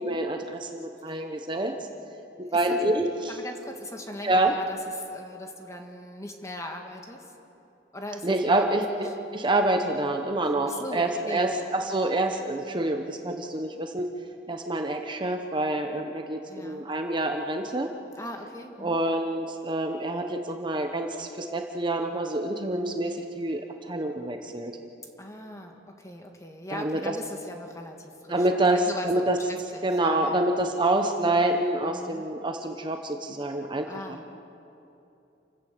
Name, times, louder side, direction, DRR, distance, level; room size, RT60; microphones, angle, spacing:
voice 1, 0.0-1.7 2.4-3.1 4.2-4.5 8.2-14.1 14.5-17.9 18.8-24.8 26.7-27.2 28.3-29.4 29.8-34.4, right 1 dB, 25° right, 4 dB, 1.1 m, -27 dB
voice 2, 2.5-2.8 3.3-7.3 7.9-8.6 9.0-9.2 10.6-11.6 16.5-16.9 18.2-19.0 25.2-30.5 31.9-32.3 33.8-34.2, left 1 dB, 20° left, 3 dB, 1.8 m, -40 dB
28.5 x 16.0 x 6.9 m, 2.8 s
head